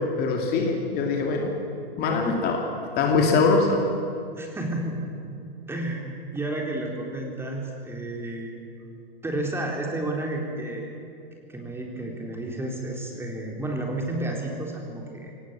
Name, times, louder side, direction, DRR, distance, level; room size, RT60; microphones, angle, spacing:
voice 1, 0.2-1.5 2.0-2.6 3.0-3.8, left 4 dB, 30° left, 2 dB, 2.7 m, -22 dB
voice 2, 4.3-5.3 5.7-6.0 6.3-8.6 9.2-10.9 11.5-15.3, right 1 dB, 10° right, 0 dB, 3.8 m, -31 dB
24.0 x 19.0 x 7.6 m, 2.5 s
figure-of-eight pair, 105°, 30 cm